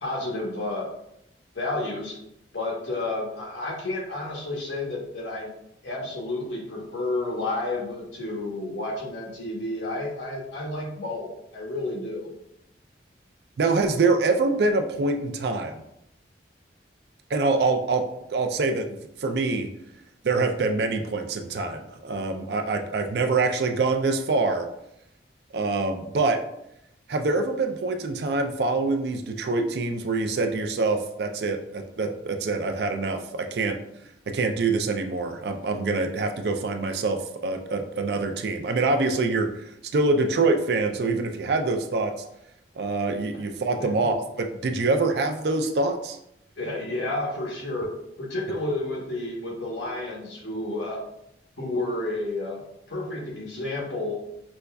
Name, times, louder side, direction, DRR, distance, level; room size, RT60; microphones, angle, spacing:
voice 1, 0.0-0.9 1.5-2.2 2.5-5.5 5.8-12.3 46.6-51.0 51.6-52.6 52.9-54.2, left 2 dB, 80° left, -2 dB, 1.0 m, -31 dB
voice 2, 13.6-15.8 17.3-18.0 18.3-19.7 20.2-24.7 25.5-26.4 27.1-33.8 34.3-42.1 42.8-46.2, right 3 dB, 65° right, 5 dB, 0.4 m, -25 dB
5.1 x 2.3 x 2.2 m, 0.79 s
head